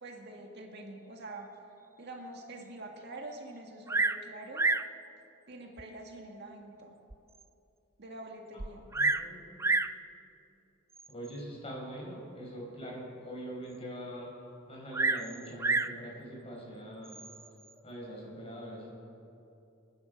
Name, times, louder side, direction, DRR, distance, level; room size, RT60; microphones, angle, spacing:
voice 1, 0.0-1.6 2.0-4.7 5.5-7.0 8.0-8.9, right 2 dB, 55° right, 1 dB, 1.8 m, -46 dB
Bird vocalization bird call bird song, 3.9-4.3 4.5-4.9 5.8-5.9 6.5-6.6 7.1-7.2 7.4-7.5 8.6-9.3 9.6-10.0 11.0-11.3 14.9-16.0 17.0-17.5, right 3 dB, 15° right, 0.3 m, -29 dB
voice 2, 8.9-9.8 11.1-14.3 14.7-17.2 17.8-18.9, equal, 30° left, -2 dB, 4.6 m, -43 dB
28.0 x 9.8 x 5.1 m, 2.8 s
head